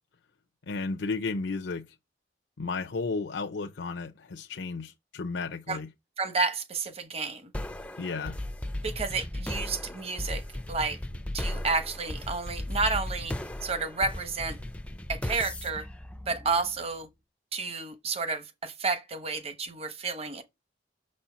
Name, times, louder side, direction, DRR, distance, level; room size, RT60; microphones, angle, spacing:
voice 1, 0.7-1.8 2.6-5.9 8.0-8.4, left 4 dB, 80° left, 0.6 m, -33 dB
voice 2, 6.2-7.4 8.8-10.4 10.7-11.0 11.3-13.3 13.6-14.6 15.1-15.9 16.3-17.1 17.5-20.4, right 4 dB, 35° right, 0.9 m, -30 dB
sound 1, 7.5-17.0, left 1 dB, 5° left, 0.4 m, -36 dB
6.5 x 4.3 x 5.6 m
head